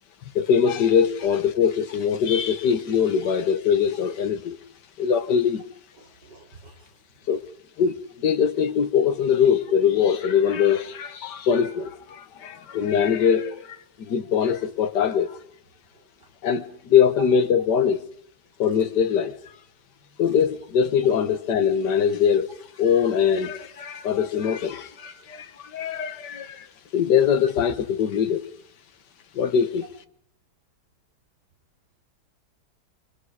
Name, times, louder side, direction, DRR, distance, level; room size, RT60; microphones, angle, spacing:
voice 1, 0.4-4.6 5.0-5.6 7.3-7.4 7.8-8.0 8.2-15.4 16.4-18.0 18.6-19.3 20.2-22.5 22.8-25.5 25.7-26.7 26.9-28.5 29.4-29.9, left 7 dB, 80° left, 1.9 m, -22 dB
voice 2, 6.0-6.9 15.9-16.3 24.0-24.2 25.2-25.3, right 2 dB, 85° right, 5.0 m, -51 dB
28.0 x 25.0 x 4.9 m
omnidirectional pair, 1.8 m